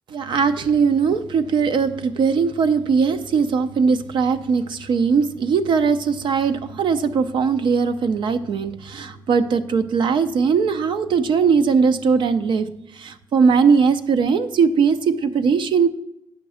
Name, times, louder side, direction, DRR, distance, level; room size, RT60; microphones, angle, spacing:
voice 1, 0.1-15.9, right 5 dB, 80° right, 10 dB, 0.6 m, -20 dB
9.5 x 6.0 x 4.9 m, 0.84 s
wide cardioid pair, 140°, 8 cm